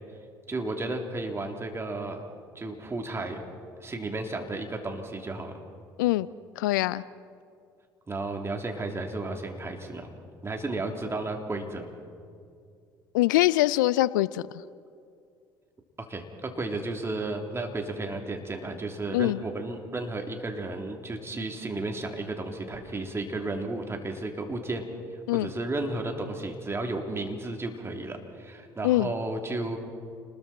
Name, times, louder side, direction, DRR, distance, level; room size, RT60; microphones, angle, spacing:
voice 1, 0.5-2.2 2.5-3.4 3.8-5.5 8.1-10.1 10.4-11.9 16.0-24.8 25.3-29.8, right 2 dB, 25° right, 3 dB, 3.3 m, -33 dB
voice 2, 6.6-7.0 13.1-14.5 19.1-19.4 25.3-25.5 28.8-29.1, left 17 dB, 80° left, 19 dB, 0.4 m, -23 dB
29.5 x 20.5 x 4.4 m, 2.3 s
hypercardioid pair, 60°, 10 cm